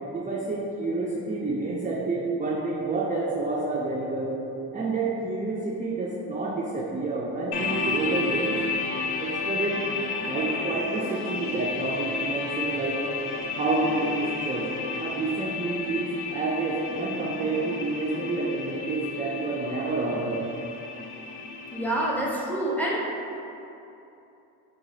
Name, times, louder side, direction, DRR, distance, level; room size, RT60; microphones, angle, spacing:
voice 1, 0.1-4.4 4.7-8.5 9.2-9.8 10.3-13.0 13.6-14.7 15.0-20.4, right 3 dB, 20° right, -4 dB, 0.3 m, -29 dB
sound 1, 7.5-22.0, left 4 dB, 70° left, 0.5 m, -32 dB
voice 2, 21.7-23.1, right 1 dB, 5° left, -5 dB, 0.7 m, -27 dB
3.0 x 2.3 x 3.8 m, 2.9 s
cardioid pair, 55°, 42 cm